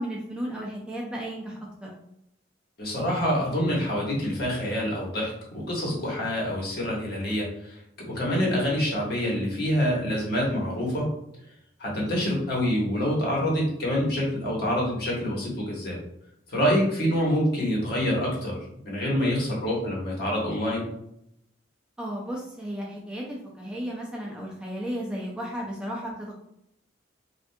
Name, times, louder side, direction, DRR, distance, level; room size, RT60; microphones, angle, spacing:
voice 1, 0.0-1.9 22.0-26.3, equal, 5° right, -3 dB, 0.5 m, -34 dB
voice 2, 2.8-7.8 8.1-11.1 11.8-16.0 16.5-18.6 18.8-20.9, equal, 55° left, -3 dB, 1.1 m, -26 dB
3.3 x 2.5 x 2.6 m, 0.76 s
head